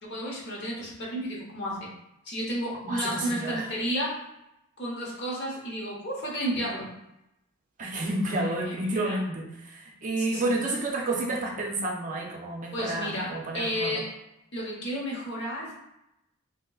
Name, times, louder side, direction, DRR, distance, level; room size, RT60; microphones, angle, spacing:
voice 1, 0.0-1.9 2.3-4.2 4.8-6.9 8.2-9.2 10.2-10.5 12.7-14.1 14.5-15.7, equal, 55° left, -3 dB, 0.9 m, -32 dB
voice 2, 2.8-3.7 7.8-14.0, right 2 dB, 35° right, -1 dB, 0.5 m, -30 dB
3.6 x 2.8 x 2.3 m, 0.87 s
head